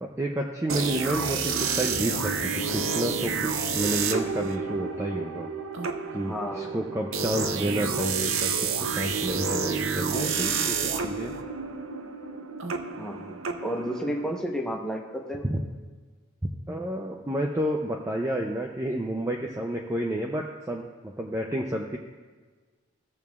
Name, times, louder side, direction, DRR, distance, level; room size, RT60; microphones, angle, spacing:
voice 1, 0.0-5.5 6.1-11.3 15.5-15.6 16.7-22.0, right 1 dB, 15° right, 1 dB, 0.4 m, -30 dB
sound 1, 0.7-14.4, right 5 dB, 75° right, 0.6 m, -29 dB
voice 2, 6.2-6.8 13.0-15.5, equal, 5° left, 0 dB, 0.9 m, -32 dB
16.0 x 7.0 x 2.4 m, 1.4 s
head